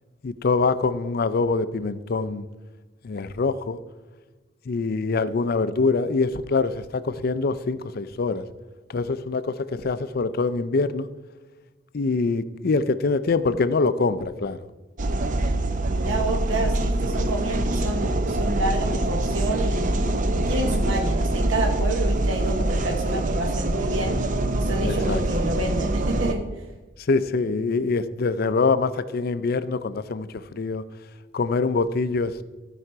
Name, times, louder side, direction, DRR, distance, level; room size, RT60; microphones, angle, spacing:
voice 1, 0.2-2.5 3.0-3.8 4.7-8.4 8.9-11.1 11.9-14.6 24.8-25.5 27.0-30.8 31.3-32.4, left 4 dB, 50° left, 14 dB, 0.4 m, -24 dB
sound 1, 15.0-26.3, right 1 dB, 40° right, 0.5 m, -24 dB
voice 2, 15.9-19.9 20.4-24.2 24.5-26.4, right 1 dB, 75° right, 2 dB, 0.9 m, -29 dB
14.0 x 4.9 x 4.6 m, 1.2 s
head